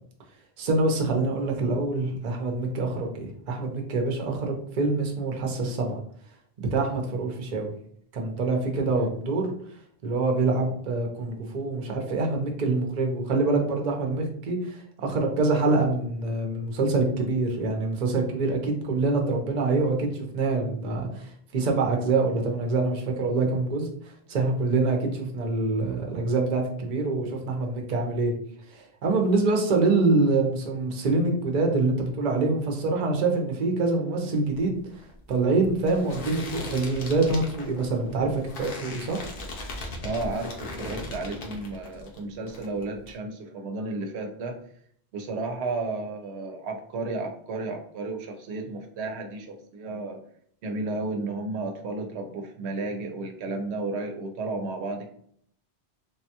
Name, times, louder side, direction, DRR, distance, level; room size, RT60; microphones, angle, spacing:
voice 1, 0.6-6.0 6.6-7.7 8.1-9.5 10.0-23.9 24.3-28.3 28.7-34.8 35.3-39.2, right 3 dB, 50° right, 2 dB, 0.7 m, -25 dB
sound 1, 34.5-42.2 42.5-43.1, left 2 dB, 60° left, 0.8 m, -39 dB
voice 2, 40.0-44.6 45.1-50.2 50.6-55.1, right 3 dB, 85° right, 4 dB, 0.9 m, -33 dB
3.4 x 2.2 x 2.8 m, 0.64 s
omnidirectional pair, 1.1 m